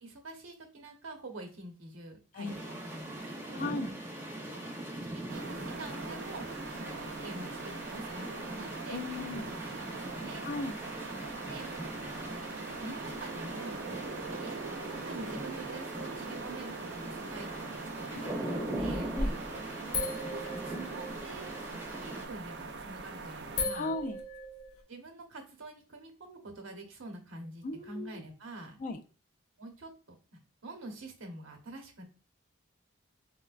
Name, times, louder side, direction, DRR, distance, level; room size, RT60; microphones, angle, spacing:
voice 1, 0.0-3.1 3.3-3.8 4.5-4.7 5.0-6.4 6.7-9.0 9.3-10.5 11.5-11.7 12.1-13.9 14.4-19.1 19.4-19.6 20.2-21.5 22.0-23.9 24.9-28.8 29.6-29.9 30.6-32.0, right 2 dB, 75° right, 3 dB, 0.9 m, -46 dB
Rain and Thunder, 2.4-22.3, right 1 dB, 10° right, 0.6 m, -41 dB
voice 2, 3.5-3.9 8.9-9.4 10.4-10.8 18.2-18.7 19.1-19.3 23.7-24.2 27.6-28.2 28.8-29.0, left 2 dB, 40° left, 6 dB, 0.3 m, -37 dB
sound 1, 5.3-23.7, right 3 dB, 55° right, 0.4 m, -42 dB
sound 2, 18.7-19.5 19.9-21.6 22.8-23.0 23.6-24.8, left 2 dB, 90° left, 0.8 m, -36 dB
3.9 x 2.1 x 2.3 m, 0.37 s
head